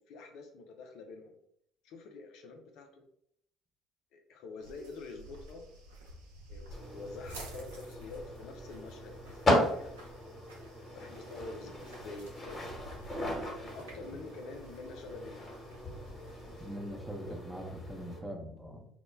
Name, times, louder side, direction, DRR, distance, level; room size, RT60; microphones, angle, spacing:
voice 1, 0.0-1.3 1.8-3.0 4.1-5.6 6.5-10.2 10.9-12.6 13.6-16.4 17.2-17.5, left 3 dB, 65° left, 3 dB, 0.4 m, -47 dB
sound 1, 4.6-16.7, right 1 dB, 80° right, 0.5 m, -52 dB
sound 2, 6.7-18.2, left 1 dB, 30° left, 1.0 m, -36 dB
voice 2, 16.6-18.9, equal, 5° right, 1 dB, 0.6 m, -42 dB
2.1 x 2.1 x 3.1 m, 0.70 s
hypercardioid pair, 60°, 0 cm